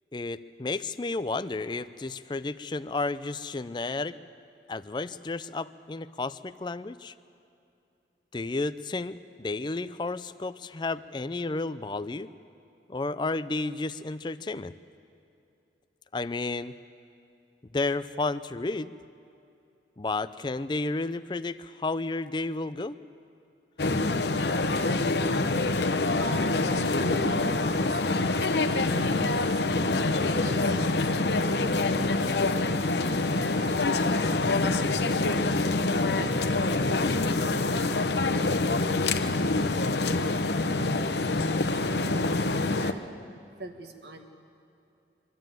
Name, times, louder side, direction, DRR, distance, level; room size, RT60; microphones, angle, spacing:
voice 1, 0.1-4.2 4.7-7.1 8.3-12.3 12.9-14.8 16.1-16.8 17.7-18.9 20.0-23.0, left 3 dB, 25° left, 13 dB, 0.4 m, -32 dB
sound 1, 23.8-42.9, left 2 dB, 70° left, 0.9 m, -26 dB
voice 2, 25.0-35.4 36.1-40.1 40.6-43.0 43.6-44.3, right 1 dB, 70° right, 5 dB, 1.6 m, -45 dB
24.0 x 12.5 x 9.1 m, 2.7 s
head